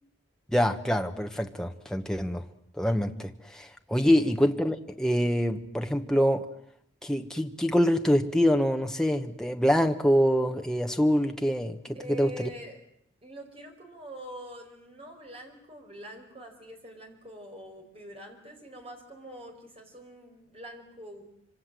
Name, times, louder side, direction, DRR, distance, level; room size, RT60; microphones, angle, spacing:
voice 1, 0.5-2.4 2.8-6.5 7.0-12.5, equal, 5° left, 1.2 m, -25 dB
voice 2, 4.0-4.3 11.9-12.8 13.2-21.2, right 1 dB, 30° right, 5.1 m, -44 dB
26.5 x 25.0 x 7.8 m
head